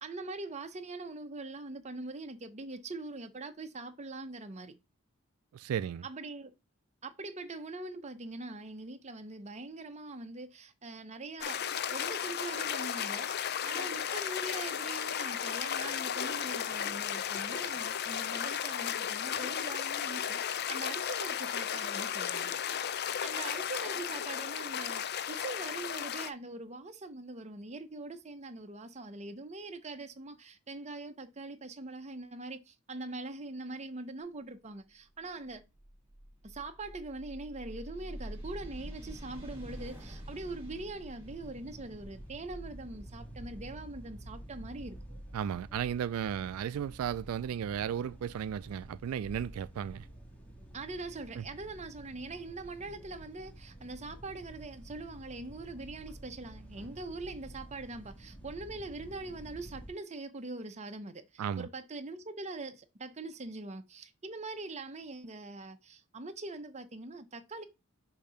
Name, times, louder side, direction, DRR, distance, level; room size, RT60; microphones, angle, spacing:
voice 1, 0.0-4.7 6.0-6.5 7.0-11.6 11.9-22.6 23.2-35.6 36.4-45.0 50.7-67.6, right 2 dB, 30° right, 0.8 m, -43 dB
voice 2, 5.5-6.0 45.3-50.1 51.4-51.5 61.4-61.7, right 8 dB, 85° right, 0.3 m, -34 dB
sound 1, 11.4-26.3, left 9 dB, 50° left, 0.5 m, -34 dB
sound 2, 35.0-45.7, equal, 10° right, 2.4 m, -48 dB
sound 3, 41.2-59.9, right 1 dB, 5° left, 1.8 m, -49 dB
6.8 x 2.8 x 5.5 m
head